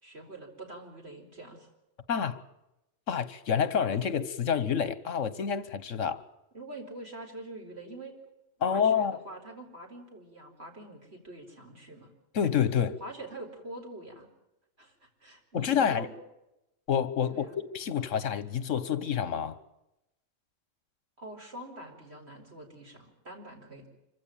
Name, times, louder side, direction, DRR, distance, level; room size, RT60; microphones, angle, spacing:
voice 1, 0.0-1.7 6.5-8.1 8.6-12.1 13.0-14.3 14.8-16.1 17.3-17.6 21.2-23.9, right 2 dB, 55° right, 4.7 m, -45 dB
voice 2, 2.1-2.4 3.1-6.2 8.6-9.2 12.3-13.0 15.5-16.1 16.9-19.6, left 7 dB, 75° left, 1.5 m, -28 dB
25.5 x 16.0 x 9.0 m
omnidirectional pair, 1.3 m